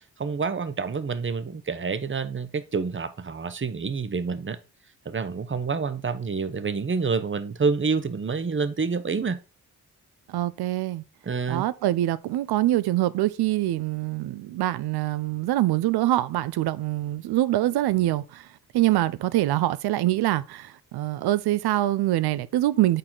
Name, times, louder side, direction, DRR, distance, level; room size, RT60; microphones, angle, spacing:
voice 1, 0.2-4.6 5.0-9.4 11.2-11.6, right 5 dB, 30° right, 0.8 m, -28 dB
voice 2, 10.3-11.0 11.5-18.5 18.7-23.0, right 15 dB, 80° right, 0.5 m, -24 dB
6.6 x 4.3 x 3.8 m
supercardioid pair, 40°, 38 cm